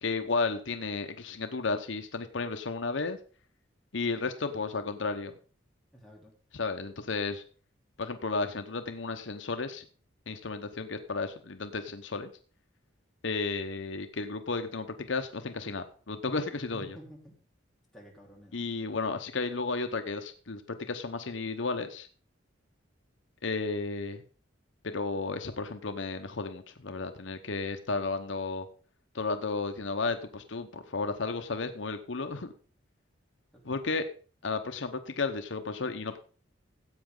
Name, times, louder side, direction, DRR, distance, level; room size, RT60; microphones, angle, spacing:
voice 1, 0.0-3.2 3.9-5.3 6.5-7.4 8.0-9.9 10.3-12.3 13.2-17.0 18.5-22.1 23.4-24.2 24.8-28.7 29.1-32.5 33.6-34.1 34.4-36.2, left 3 dB, 70° left, 7 dB, 1.0 m, -33 dB
voice 2, 5.9-6.4 16.7-17.4 17.9-18.6 33.5-33.8, right 1 dB, ahead, -3 dB, 3.3 m, -50 dB
15.5 x 8.2 x 3.8 m, 0.40 s
head